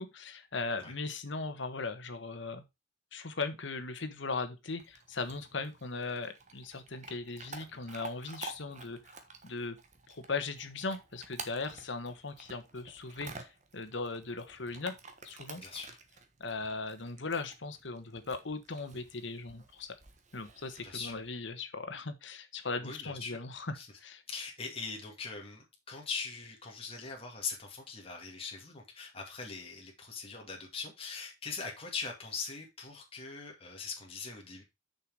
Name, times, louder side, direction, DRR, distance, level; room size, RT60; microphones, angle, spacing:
voice 1, 0.0-2.6 3.1-9.0 9.4-9.8 10.1-14.9 15.2-15.6 16.4-19.9 20.3-24.2, left 3 dB, 75° left, 1.3 m, -38 dB
Chewing mastication / Dog, 4.8-21.3, right 4 dB, 40° right, 1.3 m, -51 dB
voice 2, 15.6-16.0 20.8-21.2 22.8-23.4 23.8-23.9 24.3-34.6, left 5 dB, 30° left, 2.3 m, -41 dB
6.7 x 5.8 x 4.7 m
head